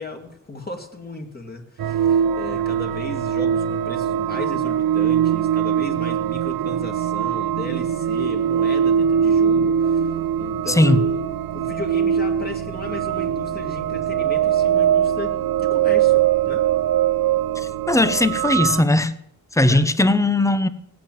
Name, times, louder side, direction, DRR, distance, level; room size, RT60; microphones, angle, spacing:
voice 1, 0.0-10.1 10.4-11.2 11.5-16.6 19.6-19.9, left 2 dB, 25° left, 2.3 m, -35 dB
sound 1, 1.8-18.8, right 9 dB, 85° right, 0.7 m, -21 dB
voice 2, 10.7-11.0 17.9-19.1 19.5-20.7, left 1 dB, 10° left, 0.9 m, -18 dB
17.5 x 8.7 x 9.1 m
wide cardioid pair, 130°, 35 cm